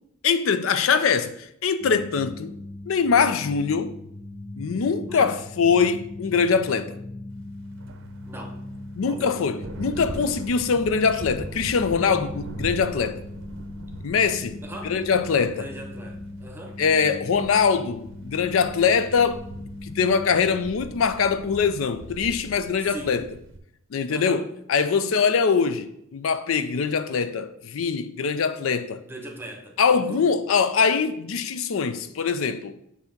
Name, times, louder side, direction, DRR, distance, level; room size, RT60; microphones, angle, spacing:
voice 1, 0.2-2.5 2.9-4.0 4.6-7.0 9.0-13.2 14.0-14.6 14.8-15.7 16.8-23.2 23.9-29.0 29.8-32.7, left 5 dB, 70° left, 0.4 m, -23 dB
sound 1, 1.8-20.7, left 2 dB, 10° left, 0.4 m, -40 dB
sound 2, 7.6-23.6, right 2 dB, 60° right, 0.6 m, -41 dB
voice 2, 8.3-8.6 9.1-9.4 14.6-15.0 15.5-16.8 22.9-23.2 24.1-24.5 29.0-30.2, right 1 dB, 10° right, 0.9 m, -39 dB
8.1 x 2.8 x 5.7 m
head